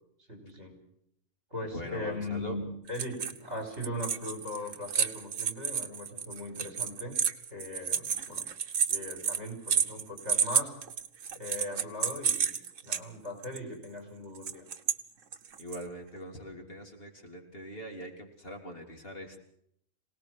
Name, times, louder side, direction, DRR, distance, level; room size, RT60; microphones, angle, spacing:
voice 1, 0.3-0.8 1.5-7.2 7.5-8.5 8.9-10.8 11.3-14.7, left 1 dB, 55° right, 6 dB, 5.8 m, -39 dB
voice 2, 1.7-2.6 15.6-19.4, equal, 45° left, 2 dB, 3.7 m, -42 dB
sound 1, 2.9-3.5 3.7-13.0 13.4-13.6 14.4-15.0 15.3-15.8, right 7 dB, 75° right, 1.5 m, -30 dB
26.0 x 18.5 x 6.4 m, 0.70 s
omnidirectional pair, 1.4 m